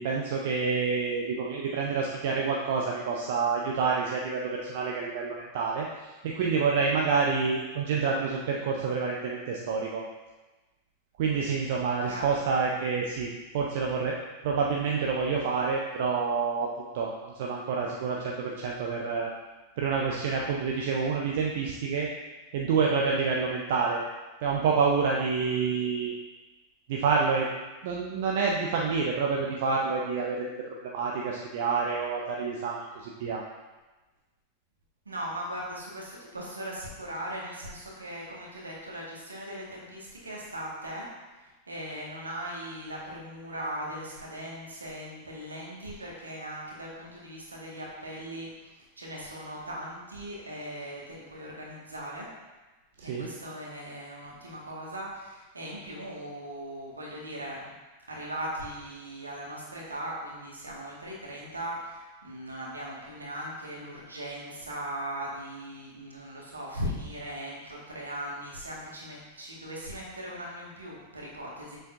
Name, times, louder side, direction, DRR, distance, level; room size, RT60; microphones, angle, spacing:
voice 1, 0.0-10.1 11.2-14.2 14.4-19.3 19.8-22.1 22.5-24.0 24.4-26.1 26.9-27.5 27.8-30.5 30.8-33.4 53.1-53.3, right 5 dB, 55° right, -1 dB, 0.7 m, -28 dB
voice 2, 35.1-41.1 41.7-52.3 53.0-57.7 58.1-71.8, right 1 dB, 80° right, -4 dB, 1.7 m, -39 dB
7.5 x 6.3 x 2.6 m, 1.2 s
figure-of-eight pair, 90°, 0 cm